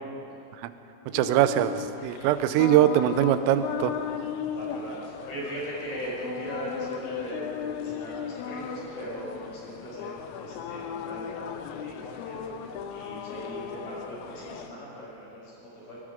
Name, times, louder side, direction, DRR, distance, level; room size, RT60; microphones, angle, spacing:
sound 1, 1.1-14.7, left 8 dB, 85° left, 3.6 m, -37 dB
voice 1, 1.1-3.9, right 11 dB, 80° right, 11 dB, 3.4 m, -22 dB
voice 2, 4.5-16.0, right 1 dB, 60° left, -6 dB, 9.1 m, -39 dB
24.5 x 21.5 x 5.2 m, 3.0 s
omnidirectional pair, 6.0 m